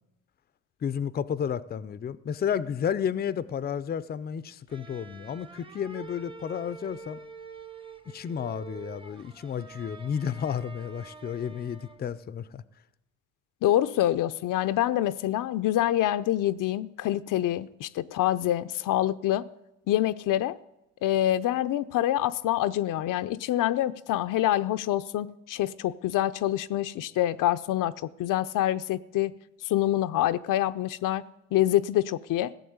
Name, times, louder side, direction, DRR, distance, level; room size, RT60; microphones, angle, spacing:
voice 1, 0.8-7.2 8.1-12.6, left 8 dB, 30° left, 0.5 m, -32 dB
sound 1, 4.7-12.2, right 5 dB, 15° right, 0.9 m, -46 dB
voice 2, 13.6-19.5 19.9-20.6 21.0-27.9 28.2-29.4 29.6-32.5, left 13 dB, 75° left, 0.6 m, -26 dB
16.0 x 7.2 x 9.5 m
cardioid pair, 125°, 32 cm